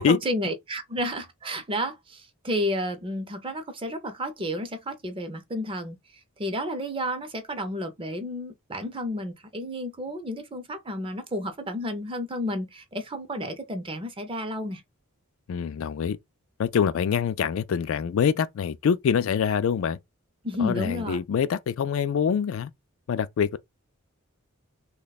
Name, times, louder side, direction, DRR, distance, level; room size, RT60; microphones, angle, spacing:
voice 1, 0.0-14.8 20.4-21.2, equal, 25° right, 0.5 m, -31 dB
voice 2, 15.5-16.2 16.6-20.0 20.6-22.7 23.1-23.6, left 7 dB, 65° left, 0.3 m, -25 dB
3.0 x 2.2 x 4.0 m
head